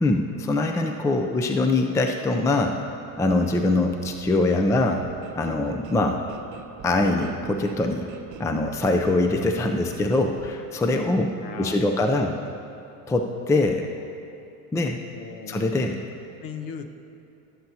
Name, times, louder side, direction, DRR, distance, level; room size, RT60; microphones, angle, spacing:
voice 1, 0.0-2.8 3.2-5.1 5.4-6.2 6.8-8.1 8.4-11.3 11.6-12.3 13.1-13.9 14.7-15.0 15.5-16.0, left 2 dB, 5° left, 4 dB, 0.4 m, -23 dB
sound 1, 3.1-10.5, right 8 dB, 45° right, 0.8 m, -44 dB
voice 2, 11.4-12.4 15.2-15.6 16.4-16.9, left 6 dB, 50° left, 8 dB, 1.0 m, -38 dB
20.0 x 8.0 x 2.8 m, 2.8 s
supercardioid pair, 105°, 43 cm